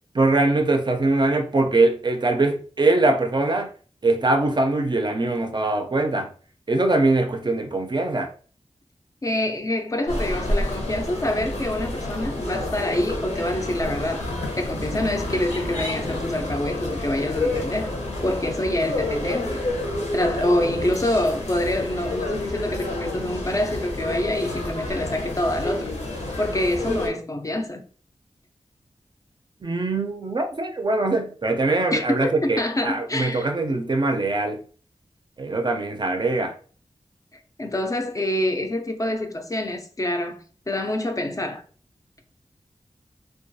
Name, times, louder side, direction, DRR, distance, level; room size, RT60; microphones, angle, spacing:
voice 1, 0.1-3.7 4.0-6.3 6.7-8.3 29.6-34.6 35.4-36.5, right 2 dB, 40° right, 0.4 m, -22 dB
voice 2, 9.2-14.2 14.6-17.9 18.2-19.6 20.1-25.9 26.4-27.8 31.9-33.5 37.6-41.6, left 1 dB, 30° left, 0.4 m, -26 dB
sound 1, 10.1-27.1, left 1 dB, 90° left, 0.7 m, -29 dB
2.2 x 2.2 x 2.6 m
wide cardioid pair, 80°, 11 cm